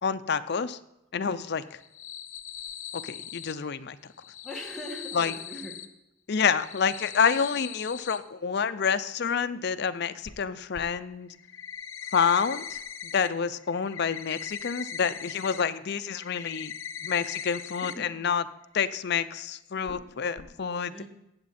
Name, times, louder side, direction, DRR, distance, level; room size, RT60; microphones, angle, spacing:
voice 1, 0.0-0.8 1.1-1.8 2.9-4.0 5.1-5.3 6.3-11.3 12.1-16.7 17.0-18.4 18.7-20.9, left 6 dB, 50° left, 12 dB, 0.5 m, -28 dB
sound 1, 1.7-3.5 4.1-5.9 6.4-8.2 10.2-10.3 10.7-10.8 11.3-13.3 13.6-15.6 16.0-17.9 18.3-18.4 18.8-18.9 19.9-20.0 20.4-20.5, left 8 dB, 70° left, 1.0 m, -40 dB
voice 2, 4.4-5.8 17.8-18.1 20.9-21.1, left 1 dB, 5° left, -2 dB, 1.6 m, -40 dB
14.5 x 8.7 x 4.2 m, 0.88 s
head